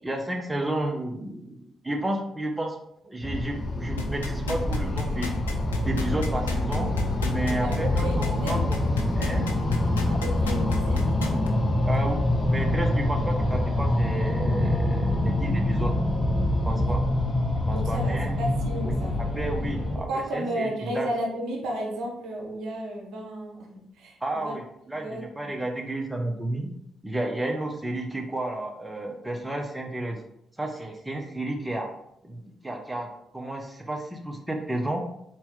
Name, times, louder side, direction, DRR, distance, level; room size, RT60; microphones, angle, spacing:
voice 1, 0.0-2.8 3.0-5.3 5.8-6.9 7.3-8.8 9.2-9.5 11.8-12.2 12.5-15.9 16.6-17.0 17.7-18.4 18.8-18.9 19.2-21.1 24.2-26.7 27.0-30.2 30.6-31.9 32.2-35.0, right 1 dB, 15° right, 2 dB, 0.7 m, -31 dB
sound 1, 3.2-20.0, left 1 dB, 35° left, 1.0 m, -25 dB
sound 2, 4.0-11.5 11.9-12.0, left 5 dB, 85° left, 0.4 m, -33 dB
voice 2, 7.6-8.7 10.1-11.1 16.7-16.9 17.7-19.1 20.1-23.7 23.9-24.5 24.9-25.6, right 1 dB, 65° right, -1 dB, 0.9 m, -33 dB
4.1 x 3.0 x 3.7 m, 0.78 s
figure-of-eight pair, 40°, 0 cm